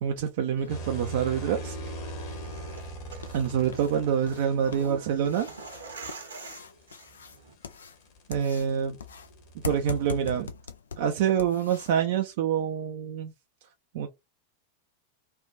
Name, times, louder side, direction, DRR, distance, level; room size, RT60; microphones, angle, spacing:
voice 1, 0.0-1.8 3.3-5.5 8.3-8.9 9.5-10.5 11.0-13.3 13.9-14.1, right 8 dB, 50° right, 0.5 m, -26 dB
sound 1, 0.6-11.9, left 6 dB, 70° left, 0.4 m, -43 dB
sound 2, 0.7-4.6 6.8-10.5, right 2 dB, 40° left, 1.5 m, -41 dB
sound 3, 1.4-7.5, right 4 dB, 70° right, 1.0 m, -46 dB
3.3 x 2.5 x 2.4 m
figure-of-eight pair, 90°, 0 cm